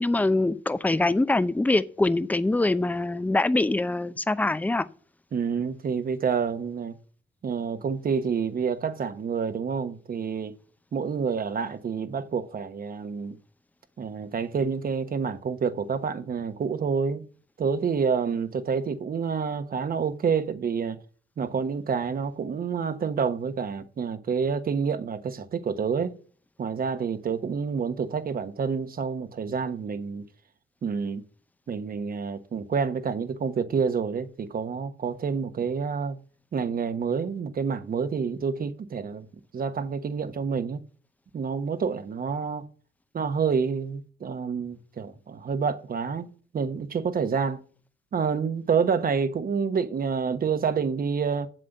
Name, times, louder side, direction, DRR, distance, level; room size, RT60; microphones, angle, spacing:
voice 1, 0.0-4.9, left 2 dB, 10° left, 0.6 m, -24 dB
voice 2, 5.3-6.9 7.4-10.5 10.9-13.4 14.0-17.2 17.6-21.0 21.4-26.2 26.6-30.2 30.8-31.2 31.7-36.2 36.5-39.3 39.5-40.8 41.3-42.7 43.1-47.6 48.1-51.5, right 6 dB, 45° right, 1.2 m, -28 dB
7.7 x 7.6 x 6.5 m
cardioid pair, 90°, 20 cm